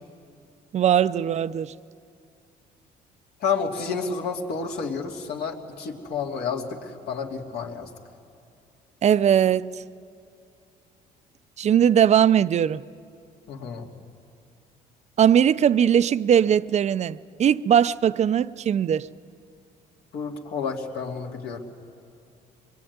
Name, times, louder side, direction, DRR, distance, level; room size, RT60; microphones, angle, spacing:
voice 1, 0.7-1.7 9.0-9.8 11.6-12.8 15.2-19.1, right 9 dB, 40° right, 0.5 m, -20 dB
voice 2, 3.4-7.9 13.5-13.9 20.1-21.6, left 5 dB, 70° left, 2.7 m, -30 dB
24.5 x 22.0 x 9.5 m
cardioid pair, 110°, 17 cm